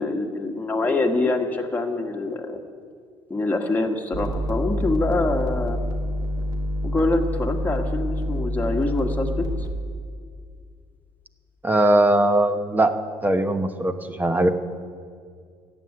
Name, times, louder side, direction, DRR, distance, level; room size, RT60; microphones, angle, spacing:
voice 1, 0.0-2.6 3.3-5.8 6.8-9.5, left 2 dB, 15° left, 2 dB, 1.7 m, -25 dB
sound 1, 4.1-9.7, equal, 30° right, 1.7 m, -27 dB
voice 2, 11.6-12.9 13.2-14.5, right 1 dB, 15° right, 9 dB, 1.0 m, -20 dB
14.5 x 7.9 x 9.6 m, 2.1 s
supercardioid pair, 95°, 12 cm